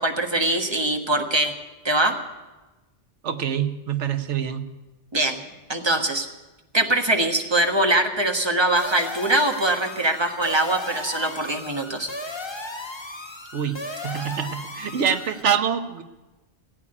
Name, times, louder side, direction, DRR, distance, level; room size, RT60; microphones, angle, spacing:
voice 1, 0.0-1.5 1.8-2.2 5.1-6.3 6.7-12.1, right 2 dB, 25° right, 4 dB, 1.4 m, -22 dB
voice 2, 3.2-4.7 13.5-16.0, right 8 dB, 90° right, 8 dB, 1.2 m, -25 dB
sound 1, 8.8-15.4, left 2 dB, 25° left, 1.3 m, -35 dB
16.0 x 8.7 x 9.8 m, 1.1 s
omnidirectional pair, 1.1 m